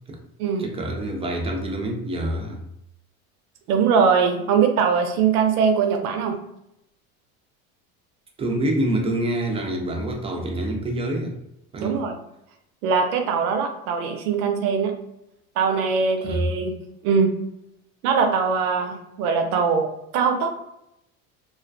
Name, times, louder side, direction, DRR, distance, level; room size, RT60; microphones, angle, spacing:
voice 1, 0.6-2.6 8.4-11.4 11.7-12.0 16.2-16.4, right 1 dB, 15° right, 2 dB, 0.4 m, -26 dB
voice 2, 3.7-6.3 11.8-12.2 12.8-14.9 15.6-16.7 17.0-17.3 18.0-20.5, right 6 dB, 90° right, 5 dB, 0.5 m, -21 dB
2.4 x 2.2 x 2.4 m, 0.81 s
supercardioid pair, 95°, 43 cm